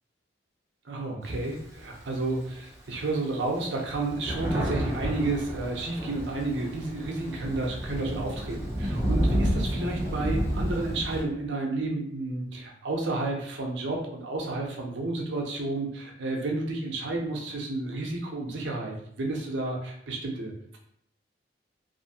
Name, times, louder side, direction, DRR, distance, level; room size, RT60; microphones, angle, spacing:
voice 1, 0.8-20.8, right 2 dB, 75° right, 0 dB, 0.6 m, -31 dB
Thunder, 1.2-2.5 3.1-3.2 3.4-11.2, equal, 15° right, 0.5 m, -30 dB
2.7 x 2.5 x 2.7 m, 0.69 s
head